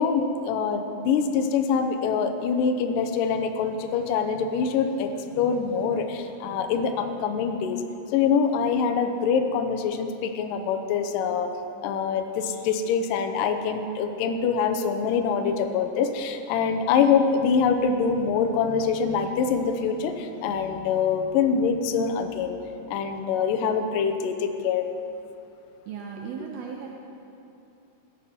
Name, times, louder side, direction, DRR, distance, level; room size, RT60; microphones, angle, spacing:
voice 1, 0.0-7.8 8.1-11.5 11.8-22.6 22.9-24.9, left 6 dB, 75° left, 6 dB, 2.0 m, -24 dB
voice 2, 25.9-26.9, right 7 dB, 75° right, 0 dB, 2.5 m, -36 dB
16.5 x 12.0 x 4.3 m, 2.7 s
omnidirectional pair, 4.8 m